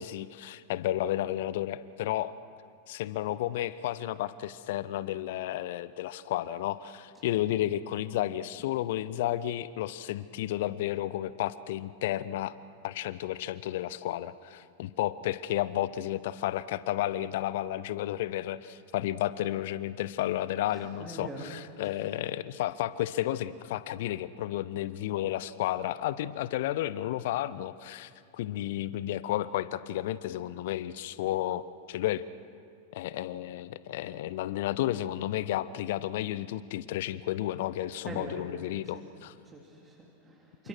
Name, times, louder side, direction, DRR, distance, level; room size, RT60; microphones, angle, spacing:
voice 1, 0.0-2.3 2.9-12.6 12.8-21.3 21.8-32.2 32.9-39.3, left 13 dB, 55° left, 17 dB, 0.7 m, -32 dB
voice 2, 20.7-21.5 21.8-22.3 38.0-38.4 38.8-39.1 39.4-40.7, right 1 dB, 15° right, -2 dB, 3.4 m, -44 dB
29.0 x 26.5 x 6.1 m, 2.4 s
figure-of-eight pair, 90°, 0 cm